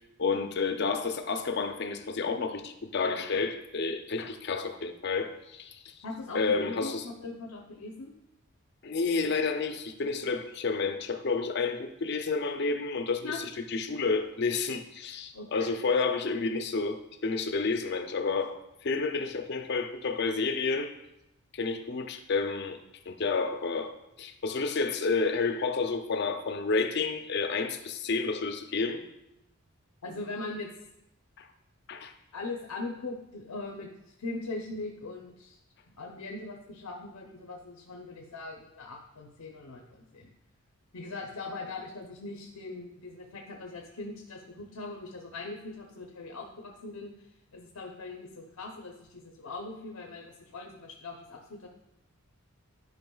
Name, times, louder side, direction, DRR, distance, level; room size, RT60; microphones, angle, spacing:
voice 1, 0.2-5.9 6.3-7.0 8.8-13.2 13.7-20.9 21.5-22.8 23.1-29.0 31.4-31.5 31.9-32.1, left 4 dB, 50° left, 8 dB, 0.5 m, -30 dB
voice 2, 6.0-8.1 13.2-13.4 15.3-15.7 30.0-30.7 32.3-35.6 36.0-40.3 40.9-47.1 47.5-51.7, left 3 dB, 90° left, 1 dB, 0.8 m, -40 dB
11.0 x 5.2 x 2.3 m, 0.85 s
head